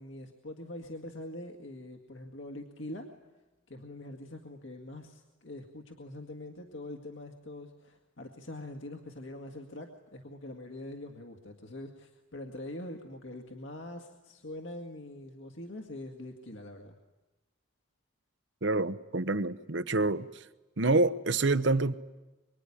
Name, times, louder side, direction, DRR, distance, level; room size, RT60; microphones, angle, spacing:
voice 1, 0.0-3.1 3.7-17.0, left 1 dB, 70° left, 2.0 m, -44 dB
voice 2, 18.6-20.3 20.8-21.9, right 2 dB, 60° right, 0.9 m, -27 dB
24.5 x 24.0 x 10.0 m
head